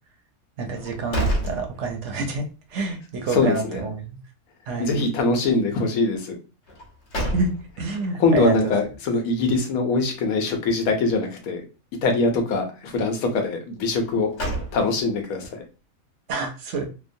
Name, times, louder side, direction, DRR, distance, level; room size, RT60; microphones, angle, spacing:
voice 1, 0.6-2.4 2.7-4.2 4.7-4.9 7.3-7.5 7.8-8.7 16.3-16.9, right 4 dB, 65° right, 4 dB, 0.8 m, -28 dB
sound 1, 0.7-2.4 2.7-2.8 6.7-7.9 14.0-15.2, right 1 dB, 60° left, 1.1 m, -29 dB
voice 2, 3.3-3.8 4.8-6.4 8.2-11.6 12.0-14.3 14.7-15.6, left 3 dB, 90° left, 4 dB, 1.1 m, -22 dB
2.9 x 2.0 x 2.5 m, 0.32 s
omnidirectional pair, 1.5 m